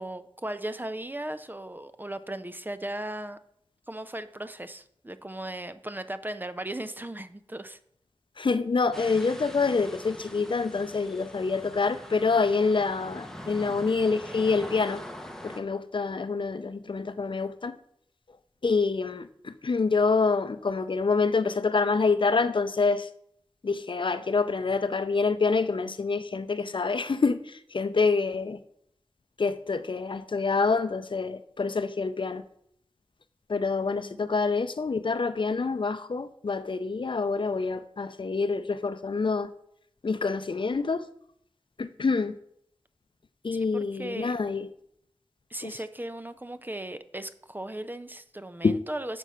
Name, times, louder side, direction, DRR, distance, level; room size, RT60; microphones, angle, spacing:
voice 1, 0.0-3.4 3.9-7.8 33.8-34.3 43.5-44.3 45.5-49.2, right 1 dB, 20° right, 0.5 m, -37 dB
voice 2, 8.4-15.0 15.4-17.8 18.6-23.1 23.6-28.6 29.4-32.4 33.5-39.5 40.0-41.1 41.8-42.4 43.4-44.7 45.6-45.7 48.6-48.8, left 4 dB, 60° left, 0.5 m, -26 dB
sound 1, 8.9-15.6, equal, 5° left, 1.1 m, -43 dB
6.9 x 5.4 x 6.2 m
wide cardioid pair, 50°, 9 cm